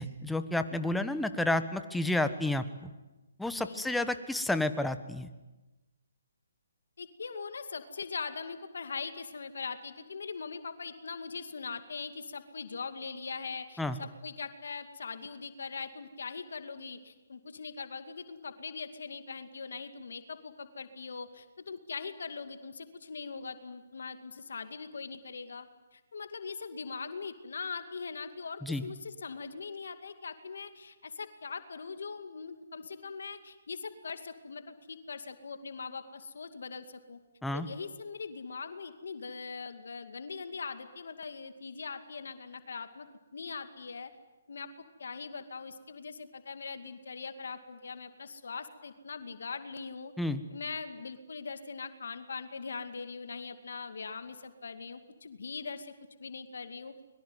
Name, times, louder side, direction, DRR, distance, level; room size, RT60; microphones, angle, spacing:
voice 1, 0.0-2.9 3.4-5.3 13.8-14.0 28.6-28.9 37.4-37.7 50.2-50.4, left 1 dB, 5° left, 10 dB, 1.3 m, -31 dB
voice 2, 7.0-25.7 25.9-37.2 37.5-43.1 43.3-44.1 44.5-44.7 45.0-50.1 50.5-55.9 56.2-56.9, left 5 dB, 70° left, 8 dB, 2.3 m, -41 dB
25.0 x 22.5 x 9.5 m, 1.1 s
hypercardioid pair, 145°, 0 cm